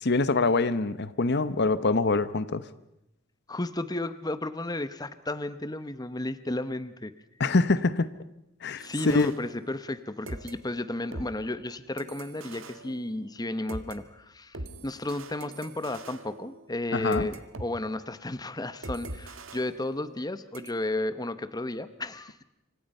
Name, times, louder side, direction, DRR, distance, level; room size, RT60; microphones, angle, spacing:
voice 1, 0.0-2.6 7.4-8.1 8.6-9.3 16.9-17.3, left 3 dB, 55° left, 15 dB, 0.9 m, -25 dB
voice 2, 3.5-7.1 8.8-14.6 14.8-22.4, left 2 dB, 20° left, 13 dB, 0.9 m, -33 dB
sound 1, 8.8-10.0 10.3-14.0 14.5-17.7 18.0-18.2 18.8-20.3 20.5-20.7, right 2 dB, 70° right, 1.9 m, -43 dB
27.5 x 25.5 x 5.5 m, 0.84 s
head